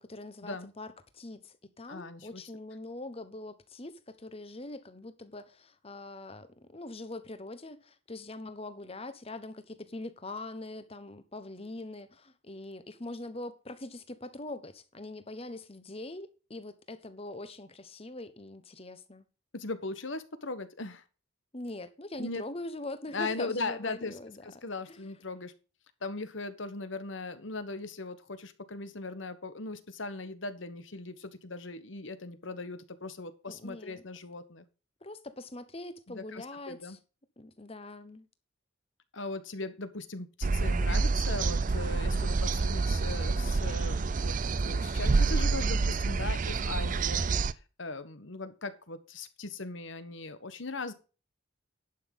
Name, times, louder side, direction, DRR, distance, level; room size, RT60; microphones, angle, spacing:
voice 1, 0.0-19.3 21.5-25.0 33.5-34.0 35.0-37.0 37.4-38.3, left 2 dB, 30° left, 1.1 m, -43 dB
voice 2, 1.9-2.4 19.5-21.0 22.2-22.4 23.1-24.1 24.4-25.5 26.0-34.6 36.1-37.0 39.1-44.4 44.6-50.9, left 3 dB, 70° left, 1.3 m, -39 dB
sound 1, 40.4-47.5, right 4 dB, 40° right, 0.5 m, -28 dB
11.0 x 6.2 x 5.4 m
head